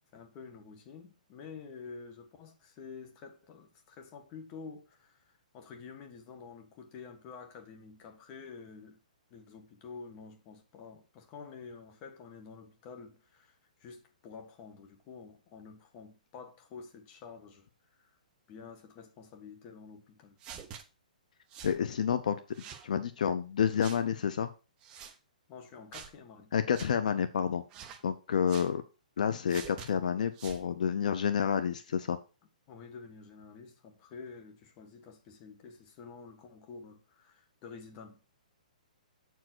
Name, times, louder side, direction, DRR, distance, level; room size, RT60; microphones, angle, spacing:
voice 1, 0.1-9.0 9.3-17.7 18.0-18.1 18.5-20.4 25.5-26.5 28.3-28.5 32.7-38.2, left 5 dB, 25° left, 1.4 m, -49 dB
sound 1, 20.4-20.8 21.5-21.8 22.5-22.9 23.8-24.0 24.8-25.1 25.9-26.1 26.7-26.9 27.7-28.0 28.5-28.7 29.5-29.9 30.3-30.6, right 8 dB, 20° right, 0.7 m, -46 dB
voice 2, 21.6-22.4 22.8-24.5 26.5-27.6 28.0-28.8 29.2-32.2, left 7 dB, 60° left, 0.7 m, -29 dB
7.5 x 4.7 x 6.1 m
hypercardioid pair, 170°, 5 cm